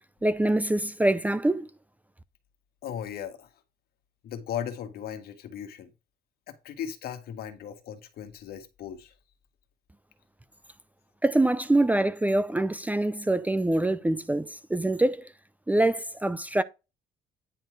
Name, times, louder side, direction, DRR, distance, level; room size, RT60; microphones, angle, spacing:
voice 1, 0.2-1.7 11.2-15.3 15.7-16.6, right 1 dB, 10° right, 0.5 m, -24 dB
voice 2, 2.8-3.5 4.2-5.9 6.5-9.1, left 9 dB, 65° left, 1.7 m, -37 dB
9.9 x 4.4 x 4.7 m
cardioid pair, 110°, 17 cm